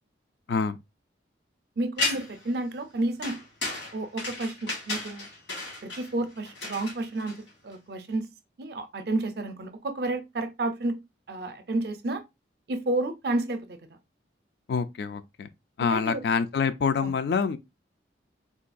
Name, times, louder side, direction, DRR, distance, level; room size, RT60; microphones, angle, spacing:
voice 1, 1.8-3.4 3.9-5.3 5.8-7.4 7.6-8.3 8.6-11.0 11.3-12.2 12.7-13.8 15.8-16.2 17.0-17.1, right 2 dB, 55° right, 0.5 m, -30 dB
sound 1, 2.0-2.5 3.2-7.7, left 2 dB, 75° left, 1.5 m, -33 dB
voice 2, 14.7-15.5 15.8-17.6, left 5 dB, 60° left, 0.3 m, -26 dB
3.6 x 2.3 x 2.5 m
head